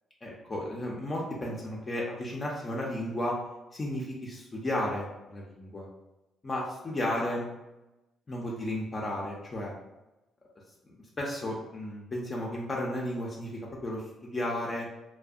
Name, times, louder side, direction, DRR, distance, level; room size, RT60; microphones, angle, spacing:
voice 1, 0.2-3.4 3.7-5.9 6.4-7.5 8.3-9.7 11.2-14.9, left 1 dB, 30° left, -3 dB, 0.4 m, -33 dB
2.5 x 2.0 x 2.3 m, 1.0 s
cardioid pair, 90°, 0 cm